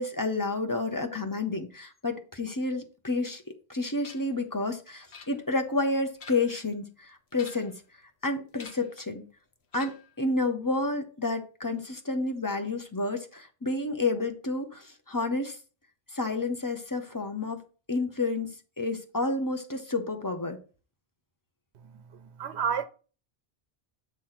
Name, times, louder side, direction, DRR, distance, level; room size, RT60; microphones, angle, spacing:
voice 1, 0.0-3.4 3.7-7.7 8.2-9.2 9.7-15.6 16.1-17.6 17.9-20.6, left 2 dB, 20° left, 0.8 m, -30 dB
sound 1, 4.0-4.4 5.1-5.7 6.1-6.6 7.3-7.8 8.6-9.0 9.7-10.2, left 6 dB, 80° left, 1.1 m, -49 dB
voice 2, 21.9-22.8, right 7 dB, 85° right, 0.9 m, -31 dB
7.9 x 3.1 x 5.7 m
omnidirectional pair, 1.1 m